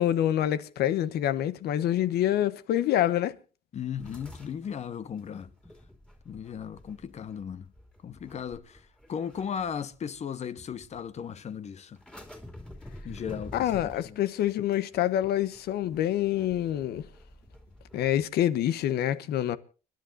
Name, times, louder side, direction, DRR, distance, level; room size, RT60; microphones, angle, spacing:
voice 1, 0.0-3.4 13.5-17.1 17.9-19.6, left 12 dB, 70° left, 1.0 m, -26 dB
voice 2, 3.7-5.5 6.2-7.7 8.0-12.0 13.0-13.7 14.0-14.2, left 8 dB, 40° left, 1.1 m, -36 dB
sound 1, 4.0-10.2 10.6-11.2 12.0-18.2, left 1 dB, 5° left, 2.8 m, -49 dB
29.5 x 10.5 x 2.6 m
cardioid pair, 110°, 17 cm